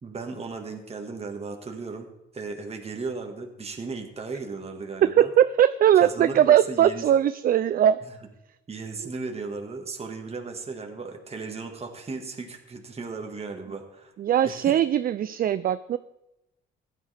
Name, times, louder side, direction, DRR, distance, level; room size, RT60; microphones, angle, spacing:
voice 1, 0.0-5.3 5.9-7.0 8.1-8.2 8.7-14.1 14.4-14.8, right 4 dB, 30° right, 3 dB, 1.7 m, -36 dB
voice 2, 5.0-8.0 14.2-16.0, right 10 dB, 45° right, 14 dB, 0.4 m, -20 dB
15.0 x 10.0 x 3.4 m, 0.91 s
cardioid pair, 90°, 20 cm